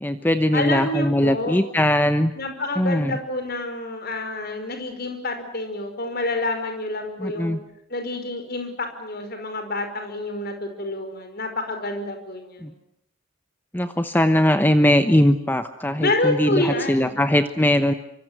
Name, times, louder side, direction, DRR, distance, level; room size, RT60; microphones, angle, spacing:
voice 1, 0.0-2.3 2.8-3.2 7.2-7.6 12.6-12.7 13.7-17.9, left 1 dB, 10° left, 9 dB, 1.0 m, -20 dB
voice 2, 0.5-1.6 2.4-7.6 7.9-12.7 16.0-17.2, left 2 dB, 45° left, 7 dB, 5.3 m, -28 dB
25.5 x 24.5 x 8.0 m, 0.75 s
head